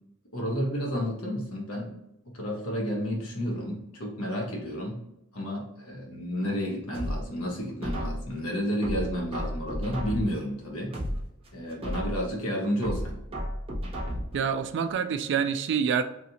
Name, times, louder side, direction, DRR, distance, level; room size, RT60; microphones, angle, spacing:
voice 1, 0.3-1.9 2.3-5.0 5.3-10.9 11.5-13.2, equal, 70° left, -1 dB, 1.1 m, -31 dB
sound 1, 6.9-8.4 8.8-10.4 10.8-12.4 12.8-14.4 14.8-14.9, equal, 25° right, 0.8 m, -33 dB
voice 2, 14.3-16.0, right 7 dB, 55° right, 9 dB, 0.3 m, -26 dB
3.1 x 2.7 x 2.8 m, 0.85 s
head